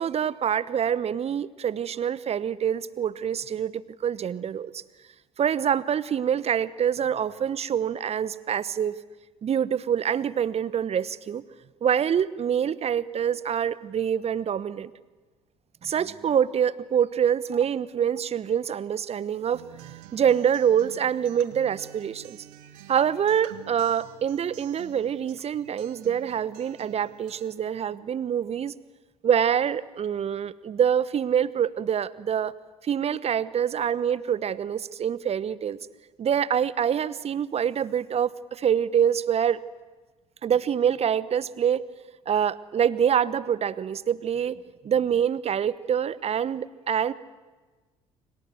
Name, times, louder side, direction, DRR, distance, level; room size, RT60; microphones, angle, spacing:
voice 1, 0.0-4.8 5.4-9.0 9.4-11.4 11.8-14.9 15.8-22.4 22.9-28.7 29.2-32.5 32.8-35.8 36.2-39.6 40.4-41.8 42.3-47.1, right 8 dB, 35° right, 19 dB, 1.1 m, -25 dB
Acoustic guitar, 19.5-27.5, right 13 dB, 65° right, 1.6 m, -48 dB
29.5 x 25.5 x 7.8 m, 1.3 s
figure-of-eight pair, 55°, 18 cm